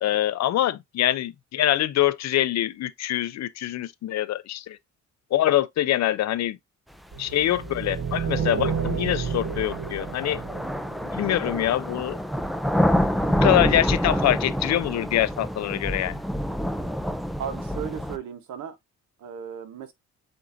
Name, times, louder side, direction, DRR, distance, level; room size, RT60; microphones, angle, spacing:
voice 1, 0.0-4.8 5.3-6.6 7.2-10.4 11.1-12.2 13.3-16.2, left 13 dB, 60° left, 0.5 m, -24 dB
sound 1, 7.1-11.5, right 6 dB, 50° right, 1.1 m, -30 dB
sound 2, 7.6-7.7 8.6-18.2, equal, ahead, 0.4 m, -27 dB
voice 2, 17.4-18.8 19.2-19.9, right 8 dB, 70° right, 1.2 m, -35 dB
7.7 x 2.6 x 2.6 m
cardioid pair, 90°, 30 cm